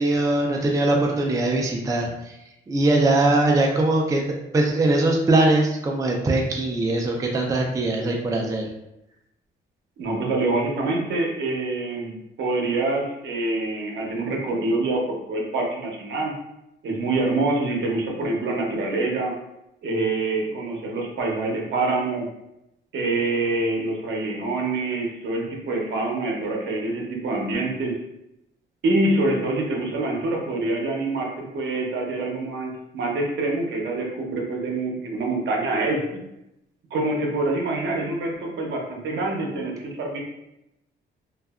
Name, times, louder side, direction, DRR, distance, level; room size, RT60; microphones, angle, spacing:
voice 1, 0.0-2.3 2.7-4.2 4.5-8.7, right 2 dB, 15° right, 0 dB, 0.4 m, -21 dB
voice 2, 10.0-16.3 16.8-19.3 19.8-22.3 22.9-27.9 28.8-36.2 36.9-40.2, right 2 dB, 65° right, 0 dB, 0.7 m, -25 dB
2.6 x 2.3 x 2.3 m, 0.86 s
cardioid pair, 90°, 20 cm